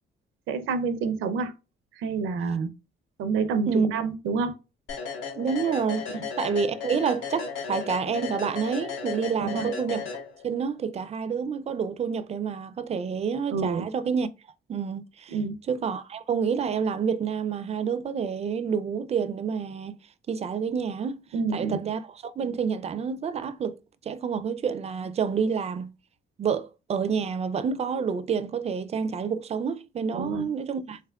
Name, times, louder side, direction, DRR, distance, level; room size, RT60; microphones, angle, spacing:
voice 1, 0.5-1.5 2.0-2.7 3.2-4.5 6.1-6.2 9.4-9.7 13.5-13.9 15.3-15.6 21.3-21.8 30.1-30.5, right 5 dB, 85° right, 0.6 m, -28 dB
sound 1, 4.9-10.7, left 6 dB, 75° left, 1.2 m, -35 dB
voice 2, 5.3-6.1 6.4-10.0 10.4-14.3 14.7-15.4 15.7-19.9 20.3-21.2 21.5-25.9 26.4-31.0, right 6 dB, 35° right, 0.4 m, -28 dB
3.5 x 3.3 x 2.2 m
cardioid pair, 90°, 20 cm